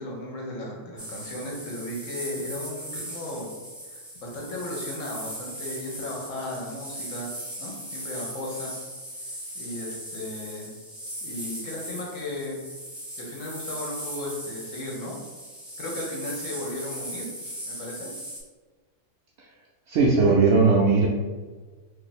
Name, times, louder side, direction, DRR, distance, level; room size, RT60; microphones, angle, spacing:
voice 1, 0.0-3.5 3.9-7.3 7.6-8.7 9.5-10.7 11.2-12.6 13.2-15.1 15.8-17.3 17.6-18.1, left 1 dB, 80° left, -2 dB, 1.2 m, -35 dB
sound 1, 1.0-18.4, equal, ahead, 0.5 m, -38 dB
voice 2, 19.9-21.1, right 4 dB, 70° right, -4 dB, 0.8 m, -18 dB
2.7 x 2.6 x 4.0 m, 1.4 s
omnidirectional pair, 1.3 m